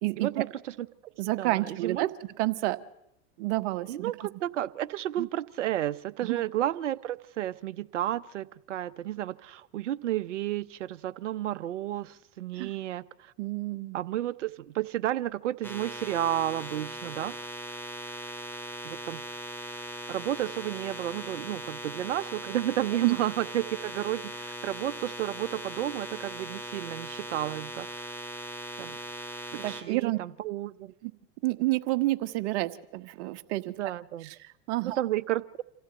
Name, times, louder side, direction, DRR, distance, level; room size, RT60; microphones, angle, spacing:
voice 1, 0.2-1.1 1.4-2.1 3.9-13.3 13.9-17.4 18.8-19.2 20.1-28.1 28.8-29.0 29.5-30.9 33.8-34.3 34.8-35.6, right 13 dB, 85° right, 14 dB, 0.9 m, -32 dB
voice 2, 1.2-2.1 2.4-2.8 3.4-4.1 5.2-5.3 6.2-6.4 12.6-12.7 13.4-14.0 23.0-23.2 29.6-30.2 31.0-31.1 31.4-33.7 34.4-35.0, right 19 dB, 65° right, 11 dB, 1.4 m, -29 dB
sound 1, 15.6-29.8, equal, 5° left, 3.4 m, -39 dB
27.0 x 15.0 x 9.0 m, 0.84 s
hypercardioid pair, 95°, 35 cm